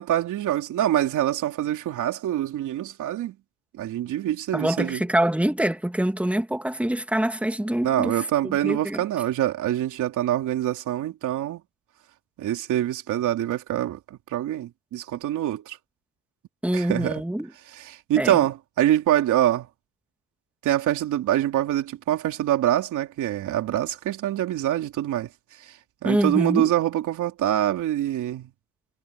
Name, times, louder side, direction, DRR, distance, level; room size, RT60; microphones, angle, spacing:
voice 1, 0.0-3.3 3.7-5.0 7.8-11.6 12.4-15.8 16.7-17.2 17.8-19.7 20.6-25.3 25.6-25.7 26.0-28.5, right 12 dB, 80° right, 3.3 m, -25 dB
voice 2, 4.5-9.0 16.6-17.5 18.2-18.4 26.0-26.7, right 1 dB, 5° right, 2.7 m, -25 dB
cardioid pair, 90°, 30 cm